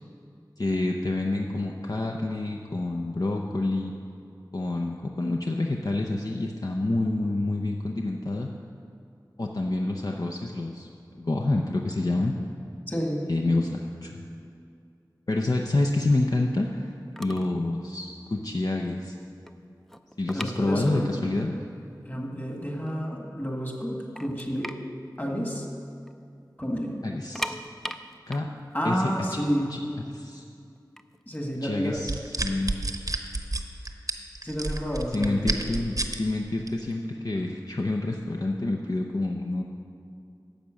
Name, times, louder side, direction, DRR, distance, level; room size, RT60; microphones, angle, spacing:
voice 1, 0.6-3.9 4.5-8.5 9.4-10.9 11.2-12.4 13.3-14.2 15.3-16.9 17.2-19.2 20.2-21.5 27.0-27.6 28.3-28.5 28.8-29.0 29.3-29.4 29.7-29.8 30.1-30.4 31.6-32.1 32.4-32.8 35.1-39.6, left 2 dB, 55° left, 1 dB, 0.6 m, -28 dB
voice 2, 12.9-13.3 20.3-21.2 22.0-24.7 25.2-25.7 26.6-27.0 28.7-29.7 31.2-32.0 34.4-35.8, equal, 25° left, 0 dB, 1.7 m, -30 dB
sound 1, 16.9-17.0 17.2-17.6 17.9-18.1 18.6-18.7 19.0-21.3 21.5-21.6 22.3-22.4 22.7-23.4 23.8-23.9 24.2-26.1 26.4-26.5 27.1-30.0 30.8-32.5, equal, 5° left, 0.5 m, -39 dB
sound 2, 32.0-36.2 36.7-36.9, right 2 dB, 50° right, 0.8 m, -29 dB
10.5 x 7.2 x 6.3 m, 2.4 s
wide cardioid pair, 40°, 8 cm